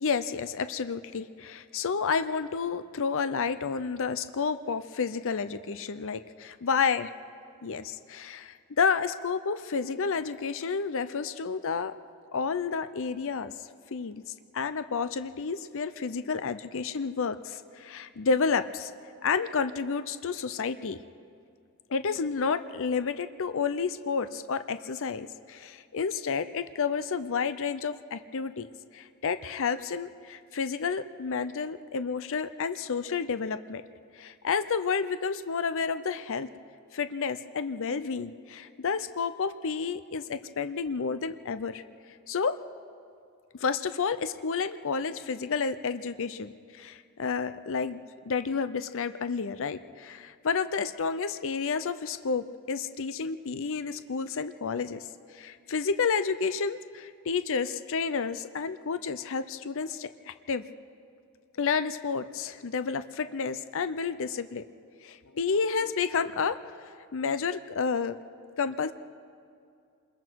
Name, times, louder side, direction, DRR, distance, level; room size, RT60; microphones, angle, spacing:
voice 1, 0.0-7.1 7.6-11.9 12.3-13.5 13.9-14.2 14.5-18.9 19.2-21.0 21.9-28.7 28.9-33.8 34.1-36.5 36.9-41.8 42.3-42.6 43.6-48.0 48.3-55.0 55.3-60.6 61.6-64.6 65.0-68.2 68.6-68.9, left 5 dB, 65° left, 12 dB, 0.6 m, -30 dB
27.5 x 21.5 x 4.6 m, 2.4 s
head